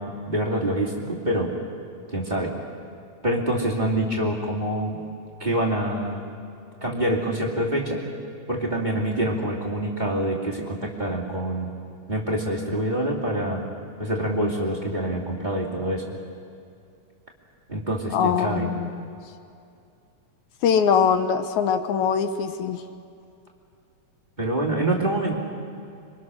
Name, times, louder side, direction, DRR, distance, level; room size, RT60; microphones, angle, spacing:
voice 1, 0.0-1.5 2.1-2.5 3.2-5.0 5.4-6.2 6.8-8.0 8.5-11.7 12.1-13.6 14.0-16.0 17.7-18.7 24.4-25.4, right 1 dB, 15° right, -2 dB, 2.4 m, -26 dB
voice 2, 18.1-19.1 20.6-22.8, left 7 dB, 75° left, 8 dB, 2.2 m, -22 dB
26.5 x 24.5 x 6.4 m, 2.5 s
omnidirectional pair, 3.5 m